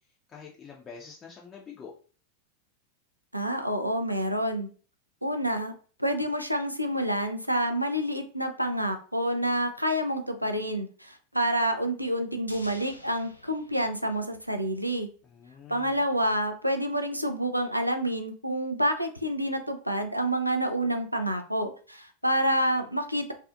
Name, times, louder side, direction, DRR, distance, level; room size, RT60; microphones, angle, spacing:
voice 1, 0.3-1.9 15.2-16.0, left 6 dB, 25° left, -3 dB, 0.4 m, -46 dB
voice 2, 3.3-4.7 5.2-5.7 6.0-15.1 15.7-23.3, equal, 90° right, 6 dB, 0.3 m, -28 dB
sound 1, 12.5-14.9 15.1-15.2, left 1 dB, 85° left, 0.3 m, -49 dB
2.4 x 2.4 x 2.5 m, 0.41 s
figure-of-eight pair, 90°, 0 cm